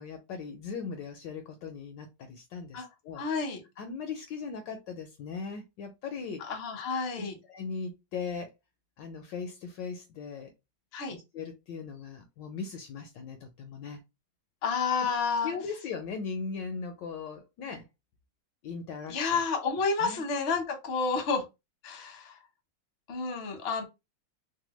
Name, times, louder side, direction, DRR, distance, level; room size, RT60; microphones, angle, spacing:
voice 1, 0.0-3.2 3.8-6.4 7.2-8.5 9.0-10.5 11.1-14.0 15.0-15.1 15.4-17.9 18.6-19.4 20.0-20.2, left 5 dB, 75° left, 1.1 m, -39 dB
voice 2, 3.2-3.6 6.5-7.4 10.9-11.2 14.6-15.5 19.1-21.4 21.8-22.3 23.1-23.8, left 4 dB, 50° left, 0.7 m, -30 dB
3.3 x 2.1 x 3.0 m
omnidirectional pair, 2.3 m